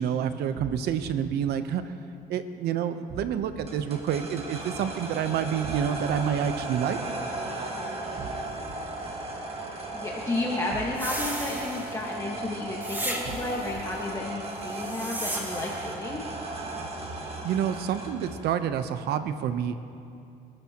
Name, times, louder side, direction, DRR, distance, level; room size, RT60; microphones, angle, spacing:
voice 1, 0.0-1.9 2.3-7.0 17.4-19.8, right 8 dB, 75° right, 10 dB, 0.9 m, -28 dB
sound 1, 0.6-1.1 3.1-3.7 5.6-6.2 8.2-8.7 10.7-11.3 13.2-13.8, right 6 dB, 55° right, 1.2 m, -40 dB
sound 2, 3.7-18.5, right 2 dB, 35° right, 2.1 m, -36 dB
voice 2, 9.9-16.2, left 2 dB, 20° left, -3 dB, 1.6 m, -32 dB
sound 3, 11.0-12.2 12.8-13.7 14.6-15.9, right 1 dB, 10° right, 1.9 m, -35 dB
28.5 x 13.0 x 3.0 m, 2.5 s
cardioid pair, 110°, 17 cm